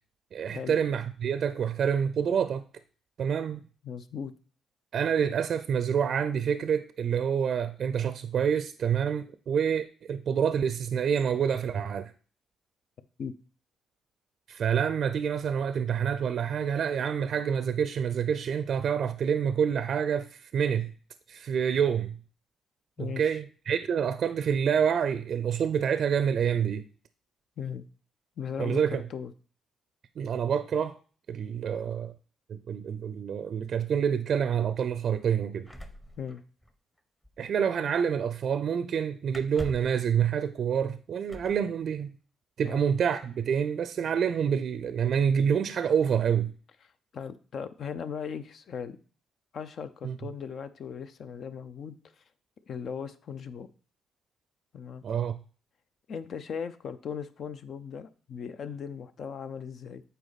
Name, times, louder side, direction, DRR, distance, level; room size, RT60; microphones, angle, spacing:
voice 1, 0.3-2.6 3.2-3.6 4.9-12.1 14.5-20.9 21.3-22.2 23.0-26.8 28.6-29.0 30.2-31.0 31.3-32.1 32.5-35.7 37.4-42.1 42.6-46.5 50.0-50.2 55.0-55.4, right 7 dB, 60° right, 0.4 m, -27 dB
voice 2, 3.8-4.3 13.2-13.3 23.0-23.4 27.6-27.8 28.4-29.3 36.2-36.4 42.6-42.8 47.1-49.0 49.5-52.2 52.7-53.7 54.7-55.0 56.1-60.0, left 7 dB, 60° left, 0.6 m, -38 dB
sound 1, 35.7-37.0 37.2-37.5 39.3-40.0 41.3-41.7 42.8-42.9 43.3-43.8, equal, 10° left, 1.0 m, -43 dB
8.1 x 4.4 x 4.1 m
cardioid pair, 90°, 0 cm